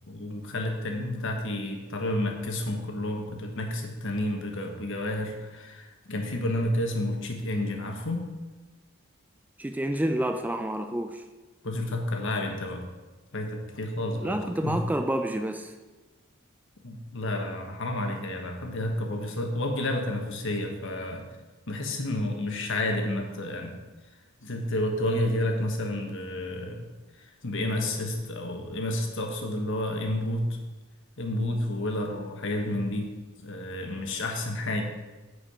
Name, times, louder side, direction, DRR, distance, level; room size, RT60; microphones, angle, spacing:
voice 1, 0.0-8.3 11.6-12.8 13.3-14.8 16.8-21.3 21.7-23.8 24.4-26.8 27.1-30.6 31.2-33.2 33.4-34.8, left 1 dB, 65° left, 3 dB, 1.4 m, -30 dB
voice 2, 9.6-11.2 14.2-15.7, right 1 dB, 10° right, 6 dB, 0.4 m, -29 dB
10.0 x 5.0 x 5.0 m, 1.2 s
head